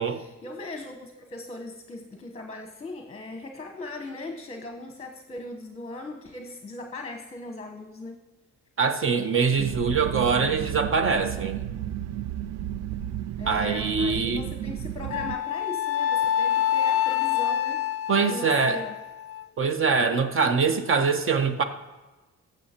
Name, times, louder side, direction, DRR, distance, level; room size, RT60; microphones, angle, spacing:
voice 1, 0.0-8.2 13.4-17.9 18.3-19.0, left 2 dB, 20° left, 4 dB, 0.9 m, -39 dB
voice 2, 8.8-11.7 13.5-14.4 18.1-18.8 19.6-21.6, right 5 dB, 45° right, 8 dB, 0.9 m, -23 dB
sound 1, 9.6-15.4, right 11 dB, 60° right, 0.4 m, -33 dB
Wind instrument woodwind instrument, 15.1-19.5, left 10 dB, 50° left, 0.4 m, -26 dB
14.5 x 6.4 x 2.9 m, 1.2 s
cardioid pair, 90°, 30 cm